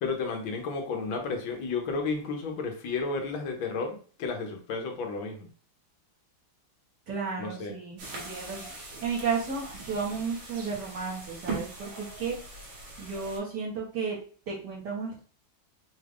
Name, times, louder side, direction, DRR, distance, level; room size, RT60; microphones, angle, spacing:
voice 1, 0.0-5.5 7.4-7.7, left 4 dB, 90° left, 3 dB, 1.7 m, -32 dB
voice 2, 7.1-12.4 13.0-14.2 14.5-15.2, right 5 dB, 60° right, -4 dB, 1.8 m, -33 dB
sound 1, 8.0-13.4, right 3 dB, 90° right, 2.3 m, -41 dB
5.0 x 2.4 x 3.4 m, 0.41 s
omnidirectional pair, 2.1 m